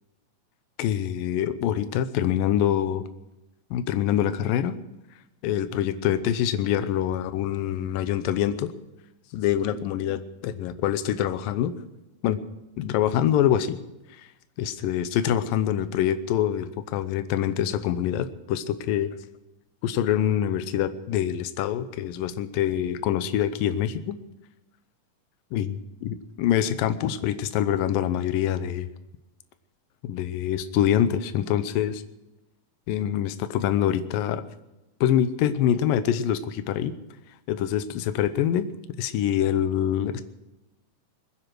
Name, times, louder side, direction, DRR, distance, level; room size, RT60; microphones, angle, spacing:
voice 1, 0.8-3.0 3.7-4.8 5.4-8.7 9.3-11.7 12.2-12.4 12.8-13.8 14.1-14.3 14.6-19.2 19.8-24.2 25.5-25.8 26.0-28.9 30.0-32.0 32.9-34.4 35.0-36.9 37.5-38.7 39.0-40.2, left 10 dB, 80° left, 11 dB, 2.5 m, -25 dB
22.0 x 10.0 x 6.1 m, 0.96 s
omnidirectional pair, 4.0 m